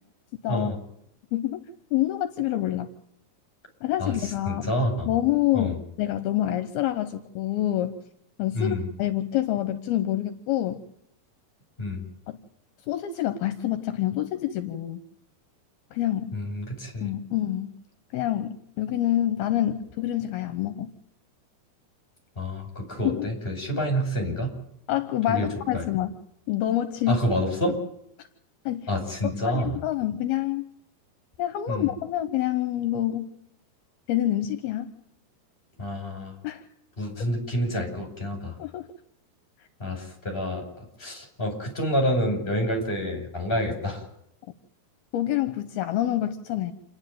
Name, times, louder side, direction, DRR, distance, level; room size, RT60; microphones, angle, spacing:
voice 1, 0.5-0.8 4.0-5.1 5.5-5.8 8.5-8.9 11.8-12.0 16.3-17.1 22.4-24.5 25.3-25.5 25.7-25.8 27.1-27.8 28.9-29.8 31.7-31.9 35.8-36.4 37.0-38.6 39.8-44.1, equal, 10° left, 3 dB, 6.1 m, -28 dB
voice 2, 1.9-2.9 3.8-4.7 5.1-8.0 8.4-10.8 12.3-12.4 12.9-15.0 15.9-16.3 17.0-17.7 18.1-20.9 23.0-23.3 24.9-26.1 26.5-27.2 28.7-28.9 29.4-30.7 31.4-33.3 34.1-34.9 36.4-36.7 38.6-38.9 45.1-46.7, left 13 dB, 75° left, 10 dB, 2.8 m, -27 dB
28.5 x 10.5 x 9.2 m, 0.76 s
omnidirectional pair, 4.6 m